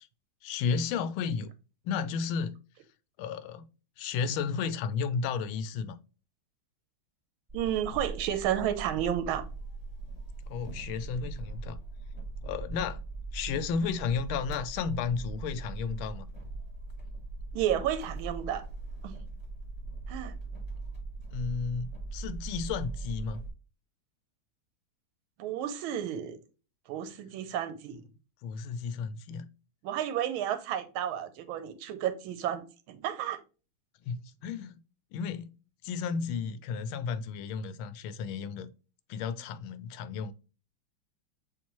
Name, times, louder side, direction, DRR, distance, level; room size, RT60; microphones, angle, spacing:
voice 1, 0.4-1.5 1.8-2.6 3.2-3.7 4.0-6.0 10.5-11.8 12.4-13.0 13.3-16.3 21.3-23.4 28.4-29.5 34.1-34.8 35.1-35.5 35.8-38.7 39.1-40.3, left 6 dB, 85° left, 1.4 m, -33 dB
sound 1, 7.5-23.5, right 3 dB, 15° right, 1.6 m, -40 dB
voice 2, 7.5-9.4 17.5-18.6 19.0-19.2 20.1-20.4 25.4-26.4 26.9-28.0 29.8-33.4, right 10 dB, 90° right, 1.5 m, -32 dB
7.0 x 2.5 x 3.0 m
omnidirectional pair, 2.2 m